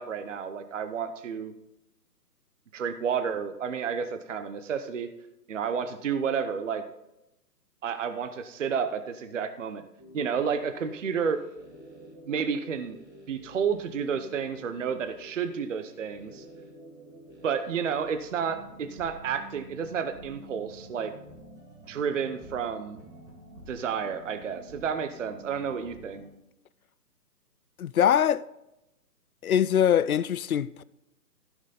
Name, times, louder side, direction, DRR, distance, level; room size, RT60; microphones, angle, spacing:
voice 1, 0.0-1.5 2.7-5.1 5.5-6.8 7.8-9.8 10.1-11.4 12.3-13.0 13.3-16.4 17.4-21.1 21.9-23.0 23.7-26.2, right 6 dB, 50° right, 0.8 m, -31 dB
sound 1, 10.0-26.3, right 1 dB, 10° right, 1.5 m, -49 dB
voice 2, 27.8-28.4 29.4-30.8, left 9 dB, 60° left, 0.5 m, -23 dB
15.0 x 6.2 x 4.0 m
hypercardioid pair, 155°, 50 cm